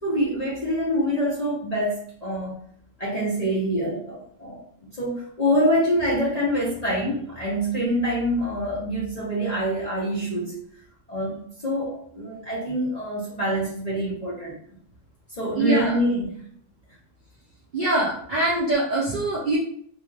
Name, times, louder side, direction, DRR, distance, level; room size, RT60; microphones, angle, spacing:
voice 1, 0.0-2.6 3.0-4.6 5.0-10.5 11.1-14.5 15.4-16.4 19.1-19.2, equal, 45° left, -7 dB, 0.5 m, -25 dB
voice 2, 15.6-16.0 17.7-19.6, right 2 dB, 85° right, -5 dB, 0.4 m, -23 dB
2.7 x 2.2 x 3.2 m, 0.63 s
omnidirectional pair, 1.7 m